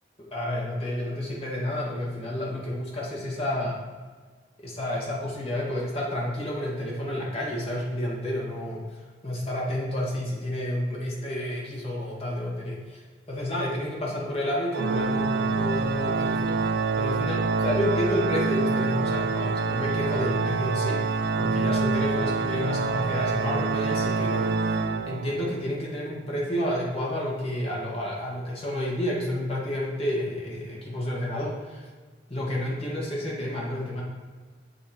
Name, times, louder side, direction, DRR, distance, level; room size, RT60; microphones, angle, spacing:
voice 1, 0.3-3.8 4.6-8.8 9.2-13.0 13.3-24.5 25.1-31.8 32.3-34.0, left 1 dB, 30° left, -4 dB, 1.6 m, -30 dB
Organ, 14.7-25.6, right 4 dB, 55° right, 0.4 m, -26 dB
7.1 x 2.9 x 5.2 m, 1.4 s
head